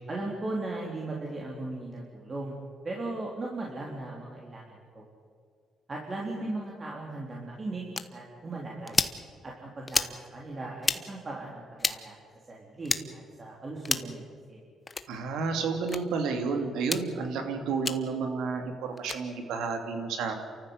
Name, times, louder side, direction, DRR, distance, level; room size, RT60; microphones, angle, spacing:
voice 1, 0.1-5.0 5.9-9.0 9.4-10.0 10.3-12.2 12.5-14.2 14.5-14.6, right 2 dB, 35° right, -3 dB, 3.8 m, -37 dB
sound 1, 7.9-8.1 8.9-9.2 9.9-10.1 10.8-11.0 11.8-12.0 12.8-13.0 13.8-14.1 14.9-15.1 15.9-16.0 16.8-17.0 17.8-18.0 19.0-19.2, left 3 dB, 25° left, 1.1 m, -28 dB
voice 2, 15.1-20.3, right 5 dB, 85° right, 5 dB, 3.0 m, -31 dB
30.0 x 14.0 x 8.1 m, 2.2 s
cardioid pair, 90°, 0 cm